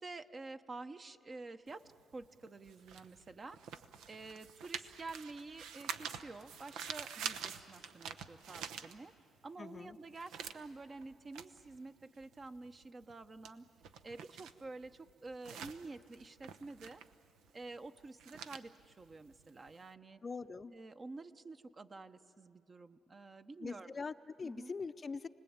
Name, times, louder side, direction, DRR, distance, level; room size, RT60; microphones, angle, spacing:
voice 1, 0.0-1.8 2.1-3.6 4.1-9.1 9.4-13.7 14.0-17.0 17.5-20.2 20.7-23.9 24.4-24.7, right 3 dB, 35° right, 9 dB, 0.9 m, -49 dB
sound 1, 1.7-9.4 9.8-19.8, right 7 dB, 85° right, 0.9 m, -47 dB
voice 2, 9.6-10.0 20.2-20.7 23.6-25.3, left 4 dB, 35° left, 11 dB, 0.6 m, -43 dB
29.0 x 20.0 x 8.8 m, 2.9 s
cardioid pair, 90°, 0 cm